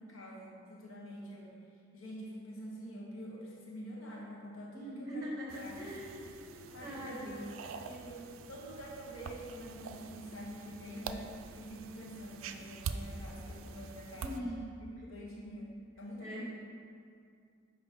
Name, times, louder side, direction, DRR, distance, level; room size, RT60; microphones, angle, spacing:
voice 1, 0.0-1.6 1.9-5.8 6.7-11.3 11.5-14.5 15.0-16.4, equal, 75° left, -3 dB, 1.0 m, -46 dB
voice 2, 4.7-6.2 6.5-7.4 14.2-14.7 15.0-15.1 16.2-16.4, equal, 15° right, -6 dB, 0.9 m, -42 dB
sound 1, 5.5-14.4, right 5 dB, 75° right, 0.4 m, -45 dB
6.7 x 5.4 x 3.6 m, 2.3 s
head